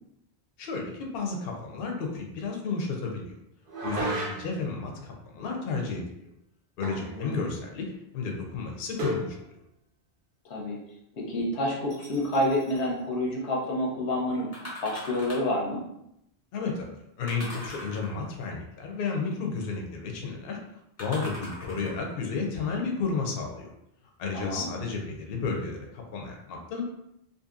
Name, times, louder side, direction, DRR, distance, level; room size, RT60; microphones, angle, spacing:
voice 1, 0.6-3.4 3.8-6.0 6.8-7.8 8.1-9.4 16.5-16.9 17.2-20.6 21.0-23.7 24.2-26.8, left 4 dB, 65° left, 1 dB, 0.7 m, -32 dB
sound 1, 3.7-4.7 6.8-7.2 7.4-7.5 9.0-9.3, right 1 dB, 55° right, 0.7 m, -32 dB
voice 2, 7.0-7.5 10.4-10.8 11.2-14.5 14.8-15.8 24.3-24.7, left 1 dB, 90° left, -2 dB, 1.1 m, -28 dB
sound 2, 11.9-12.8 14.5-15.6 17.3-18.4 21.0-22.1 22.8-22.9, left 1 dB, 20° left, 0.5 m, -42 dB
2.6 x 2.5 x 2.4 m, 0.79 s
omnidirectional pair, 1.1 m